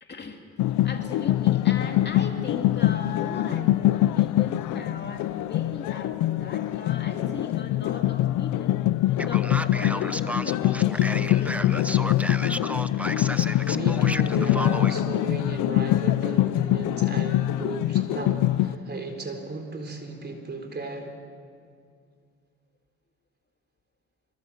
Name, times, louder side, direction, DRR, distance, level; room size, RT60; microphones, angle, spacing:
voice 1, 0.0-0.4 0.8-8.8 9.2-11.9, left 4 dB, 35° left, 3 dB, 2.5 m, -38 dB
sound 1, 0.6-18.7, left 14 dB, 85° left, 0.7 m, -24 dB
Male speech man speaking, 9.2-15.0, right 1 dB, 5° right, 0.8 m, -33 dB
voice 2, 13.7-21.1, right 2 dB, 35° right, 4 dB, 4.1 m, -35 dB
25.5 x 23.0 x 7.4 m, 2.2 s
cardioid pair, 90°, 30 cm